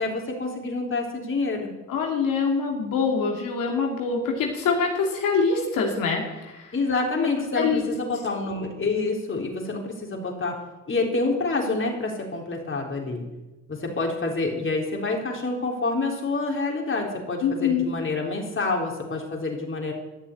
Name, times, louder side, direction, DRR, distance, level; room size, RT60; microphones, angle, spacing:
voice 1, 0.0-1.7 6.7-10.6 10.9-13.2 13.7-19.9, left 3 dB, 40° left, 0 dB, 3.7 m, -27 dB
voice 2, 1.9-6.7 7.2-7.3 7.5-7.8 17.4-17.9, left 5 dB, 80° left, 0 dB, 2.6 m, -24 dB
13.0 x 7.0 x 9.4 m, 1.1 s
supercardioid pair, 65°, 33 cm